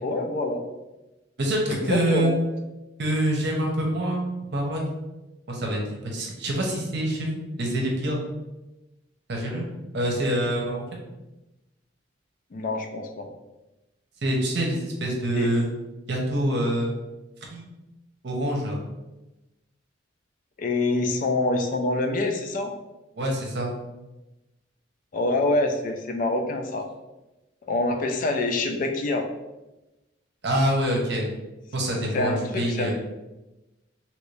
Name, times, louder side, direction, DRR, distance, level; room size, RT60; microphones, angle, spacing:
voice 1, 0.0-0.7 1.7-2.4 12.5-13.3 15.3-15.5 20.6-22.7 25.1-26.9 27.7-29.3 32.1-32.9, left 2 dB, 45° left, 4 dB, 0.3 m, -26 dB
voice 2, 1.4-2.3 3.0-4.8 5.5-8.2 9.3-9.7 9.9-11.0 14.2-15.7 16.1-16.9 17.5-17.7 18.2-18.8 23.2-23.7 30.4-31.3 31.7-32.9, right 1 dB, 60° right, 0 dB, 0.8 m, -26 dB
2.9 x 2.6 x 3.2 m, 1.0 s
head